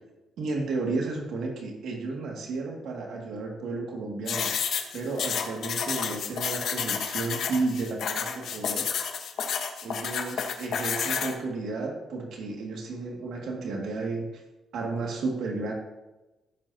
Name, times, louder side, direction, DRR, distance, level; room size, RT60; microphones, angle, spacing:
voice 1, 0.4-4.5 4.9-8.9 9.8-14.4 14.7-15.7, right 3 dB, 75° right, -1 dB, 2.3 m, -32 dB
sound 1, 4.3-11.3, left 7 dB, 70° left, 1.3 m, -30 dB
16.0 x 7.9 x 2.9 m, 1.0 s
cardioid pair, 90°, 0 cm